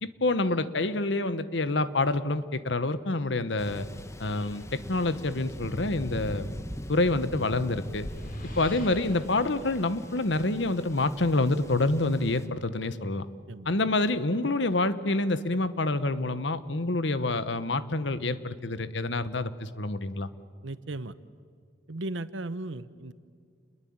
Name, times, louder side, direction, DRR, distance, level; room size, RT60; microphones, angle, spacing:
voice 1, 0.0-3.9 4.2-6.5 6.9-8.1 8.6-13.3 13.6-20.3, left 2 dB, 70° left, 13 dB, 1.2 m, -27 dB
Thunder, 3.6-12.5, left 1 dB, 15° left, 1.2 m, -42 dB
sound 1, 7.8-10.9, left 1 dB, 45° left, 4.0 m, -43 dB
voice 2, 20.6-21.1 21.9-23.1, right 2 dB, 85° right, 14 dB, 1.1 m, -36 dB
29.0 x 21.5 x 8.8 m, 2.1 s
head